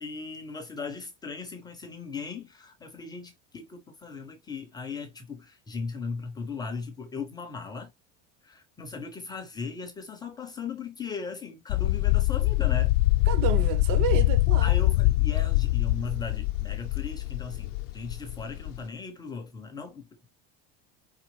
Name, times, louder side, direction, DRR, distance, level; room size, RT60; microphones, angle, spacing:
voice 1, 0.0-7.9 8.4-12.9 14.6-20.3, left 4 dB, 10° left, 0.4 m, -38 dB
sound 1, 11.7-18.8, left 18 dB, 70° left, 0.5 m, -24 dB
voice 2, 13.3-14.7, right 11 dB, 50° right, 0.5 m, -30 dB
4.8 x 3.3 x 3.0 m
cardioid pair, 180°, 38 cm